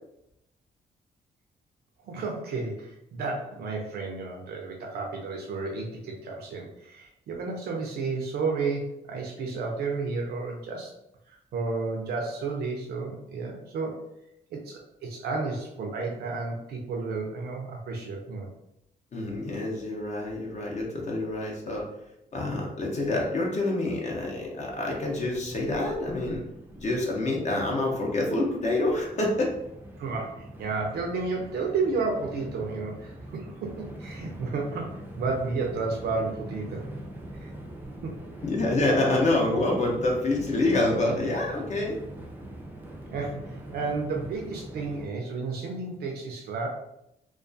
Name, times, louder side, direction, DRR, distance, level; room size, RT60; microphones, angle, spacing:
voice 1, 2.0-10.9 11.3-14.0 14.5-18.5 30.0-36.9 37.3-37.5 38.0-38.1 43.1-46.7, right 4 dB, 75° right, 0 dB, 0.5 m, -32 dB
voice 2, 19.1-21.8 22.3-26.4 26.8-29.5 38.4-42.0, left 2 dB, 45° left, -2 dB, 0.6 m, -27 dB
Train, 25.1-45.0, right 1 dB, 10° right, 0.4 m, -43 dB
2.3 x 2.2 x 2.5 m, 0.81 s
cardioid pair, 105°, 17 cm